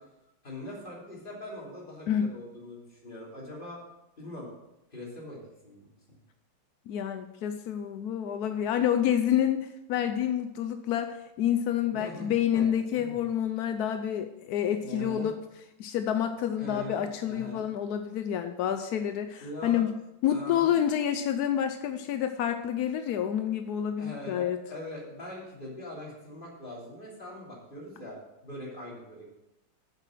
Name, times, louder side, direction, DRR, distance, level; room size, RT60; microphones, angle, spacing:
voice 1, 0.4-3.8 4.2-4.5 4.9-5.9 11.9-12.7 12.9-13.2 14.8-15.3 16.6-17.6 19.4-19.8 20.3-20.7 24.0-28.2 28.4-29.3, left 1 dB, 25° left, -4 dB, 3.3 m, -42 dB
voice 2, 6.9-15.4 15.8-19.9 20.2-24.6, left 9 dB, 75° left, 8 dB, 0.9 m, -28 dB
7.9 x 7.6 x 6.1 m, 0.92 s
omnidirectional pair, 2.3 m